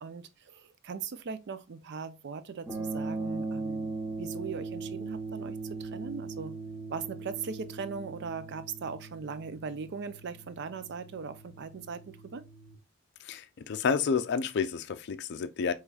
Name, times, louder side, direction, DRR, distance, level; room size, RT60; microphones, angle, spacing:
voice 1, 0.0-6.5 6.9-12.4, right 5 dB, 55° right, 0.5 m, -39 dB
sound 1, 2.7-12.8, right 3 dB, 15° right, 0.9 m, -39 dB
voice 2, 13.2-15.7, left 6 dB, 55° left, 0.4 m, -30 dB
4.7 x 3.1 x 2.3 m
head